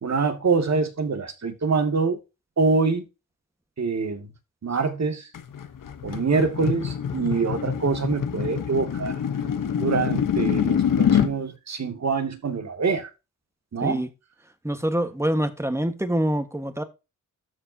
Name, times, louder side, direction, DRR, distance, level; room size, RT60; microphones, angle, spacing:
voice 1, 0.0-2.2 2.6-3.1 3.8-4.3 4.6-5.3 6.0-9.2 9.8-13.1 13.7-14.0, right 4 dB, 55° right, 2.3 m, -25 dB
sound 1, 5.3-11.3, left 8 dB, 75° left, 1.1 m, -25 dB
voice 2, 14.6-16.8, right 1 dB, 10° right, 1.5 m, -25 dB
13.5 x 4.8 x 2.8 m
cardioid pair, 85°, 33 cm